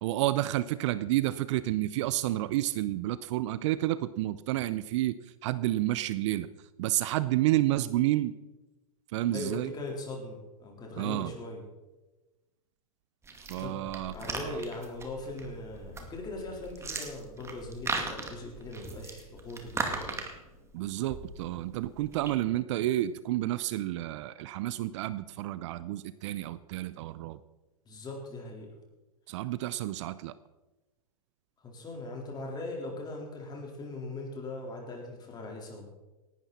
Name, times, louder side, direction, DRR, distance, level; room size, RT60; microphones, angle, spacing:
voice 1, 0.0-6.5 6.8-8.3 9.1-9.7 11.0-11.3 13.5-14.6 20.7-27.4 29.3-30.3, right 15 dB, 50° right, 15 dB, 0.6 m, -30 dB
voice 2, 9.3-11.6 13.6-20.2 27.9-28.7 31.6-35.9, left 2 dB, 20° left, 0 dB, 4.2 m, -40 dB
sound 1, 13.2-22.4, right 3 dB, 15° right, 2.2 m, -39 dB
18.0 x 12.0 x 4.3 m, 1.1 s
hypercardioid pair, 110°, 19 cm